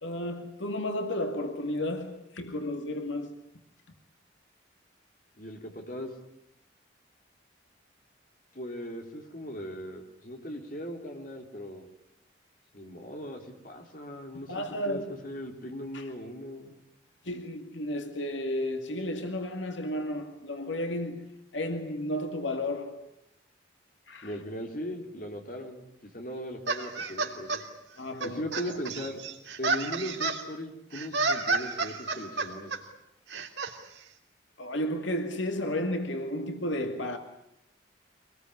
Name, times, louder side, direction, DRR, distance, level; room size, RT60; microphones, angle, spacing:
voice 1, 0.0-3.4 14.5-15.1 15.9-16.0 17.3-21.3 21.5-23.1 24.1-24.3 28.0-28.5 34.6-37.2, left 1 dB, 80° left, 2.3 m, -32 dB
voice 2, 5.4-6.1 8.5-11.9 12.7-16.7 24.2-27.6 28.2-29.2 29.6-32.7, equal, 45° left, 3.4 m, -39 dB
sound 1, 26.7-27.6 28.2-30.4 30.9-32.8 33.3-33.7, right 3 dB, 70° right, 3.0 m, -30 dB
24.5 x 20.5 x 9.7 m
head